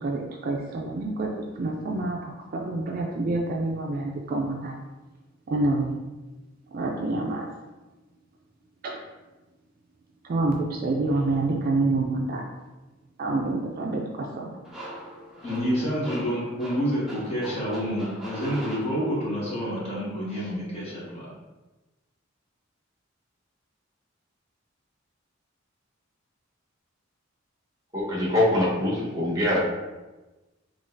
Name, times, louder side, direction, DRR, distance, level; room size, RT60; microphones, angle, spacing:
voice 1, 0.0-4.8 5.5-6.0 6.7-7.5 8.8-9.0 10.2-12.5 13.2-14.6, right 2 dB, 45° right, 0 dB, 0.4 m, -27 dB
sound 1, 14.6-19.4, equal, ahead, 0.6 m, -41 dB
voice 2, 15.4-21.3, equal, 30° left, -6 dB, 1.1 m, -28 dB
voice 3, 27.9-29.6, left 1 dB, 20° right, -5 dB, 1.1 m, -23 dB
3.9 x 3.1 x 2.5 m, 1.1 s
head